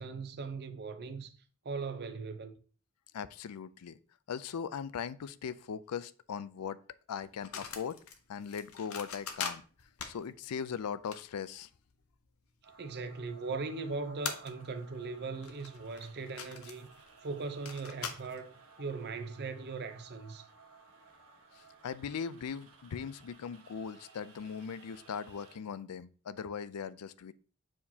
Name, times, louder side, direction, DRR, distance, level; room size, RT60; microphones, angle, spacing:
voice 1, 0.0-1.4 1.6-2.6 12.8-16.9 17.2-18.5 18.8-20.5, right 4 dB, 45° right, 0.7 m, -39 dB
voice 2, 3.1-4.0 4.3-6.8 7.1-8.0 8.3-9.6 10.1-11.7 21.8-27.3, left 7 dB, 85° left, 0.4 m, -39 dB
sound 1, 7.2-12.3 12.8-12.9 13.8-13.9 14.2-14.9 15.2-18.4, left 7 dB, 70° left, 0.8 m, -42 dB
sound 2, 12.6-25.6, right 4 dB, 65° right, 1.3 m, -58 dB
7.4 x 4.6 x 2.8 m
head